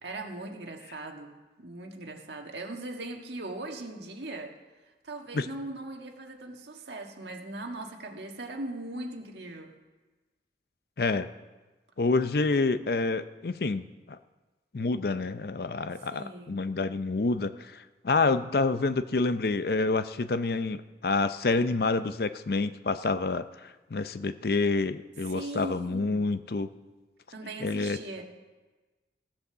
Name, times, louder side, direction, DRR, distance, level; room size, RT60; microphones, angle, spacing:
voice 1, 0.0-4.6 5.0-9.7 16.0-16.5 25.3-26.3 27.3-28.2, right 2 dB, 80° right, 2 dB, 1.6 m, -39 dB
voice 2, 11.0-11.3 12.0-14.2 14.7-26.7 27.6-28.0, left 3 dB, 60° left, 12 dB, 0.5 m, -28 dB
15.5 x 8.2 x 6.8 m, 1.2 s
head